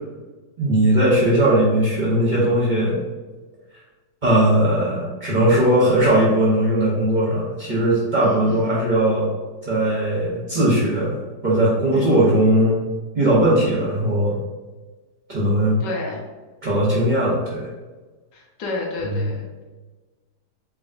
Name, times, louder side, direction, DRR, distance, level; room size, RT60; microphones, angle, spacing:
voice 1, 0.6-3.0 4.2-9.3 9.6-12.8 13.1-14.4 15.3-15.8 16.6-17.7 19.0-19.2, right 1 dB, 30° right, -7 dB, 1.0 m, -19 dB
voice 2, 8.2-8.7 11.9-12.4 15.8-16.2 18.3-19.6, left 3 dB, 85° left, -1 dB, 1.5 m, -31 dB
4.0 x 3.3 x 2.6 m, 1.3 s
omnidirectional pair, 1.8 m